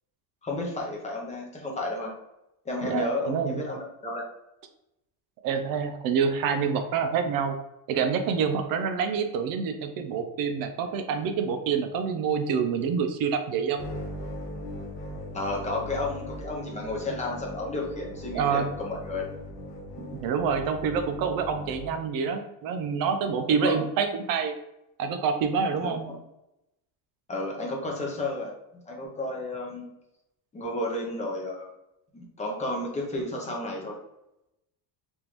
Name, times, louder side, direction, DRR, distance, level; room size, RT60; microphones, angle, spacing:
voice 1, 0.4-2.1 2.6-4.2 15.3-19.3 23.6-23.8 25.8-26.1 27.3-28.5 28.9-29.8 30.5-31.7 32.1-34.0, left 2 dB, 15° left, -1 dB, 0.5 m, -32 dB
voice 2, 2.8-3.6 5.4-7.5 7.9-13.8 18.3-18.6 20.0-24.6 25.0-26.1, right 6 dB, 50° right, 7 dB, 0.4 m, -27 dB
sound 1, 13.8-22.0, left 1 dB, 55° left, 0.9 m, -39 dB
3.5 x 2.5 x 2.9 m, 0.88 s
cardioid pair, 150°, 48 cm